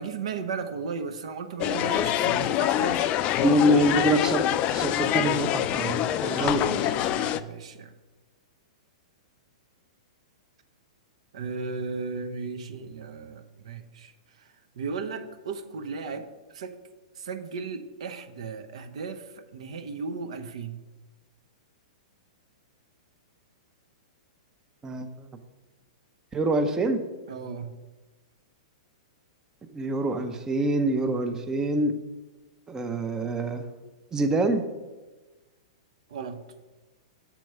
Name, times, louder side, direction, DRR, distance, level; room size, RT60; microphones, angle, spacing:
voice 1, 0.0-3.0 3.3-3.4 6.2-7.9 11.3-16.3 16.5-16.8 17.1-20.8 27.3-27.7 36.1-36.4, right 5 dB, 65° right, 8 dB, 0.7 m, -36 dB
sound 1, 1.6-7.4, left 12 dB, 35° left, 0.3 m, -25 dB
voice 2, 3.4-6.9 24.8-25.3 26.3-27.0 29.7-31.9 32.7-33.7 34.1-34.6, right 1 dB, 15° right, 8 dB, 0.6 m, -25 dB
7.0 x 4.5 x 5.5 m, 1.2 s
hypercardioid pair, 110°, 4 cm